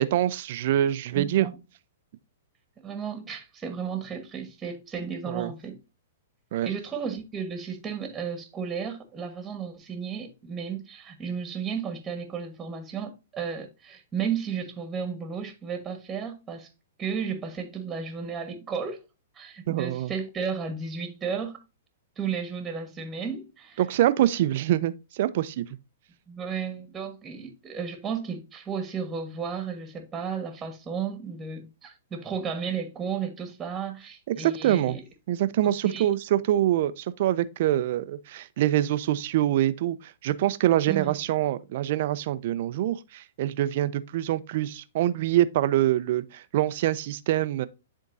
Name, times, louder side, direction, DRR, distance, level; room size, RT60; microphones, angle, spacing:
voice 1, 0.0-1.5 5.3-5.5 6.5-6.7 19.7-20.1 23.8-25.7 34.3-35.0 35.3-47.7, right 13 dB, 55° right, 0.5 m, -25 dB
voice 2, 1.1-1.5 2.8-5.8 6.6-16.7 17.0-19.0 19.3-21.6 22.2-23.8 26.3-35.0 35.6-36.2 40.9-41.2, right 6 dB, 15° right, 1.4 m, -33 dB
11.0 x 3.7 x 2.6 m
hypercardioid pair, 125°, 0 cm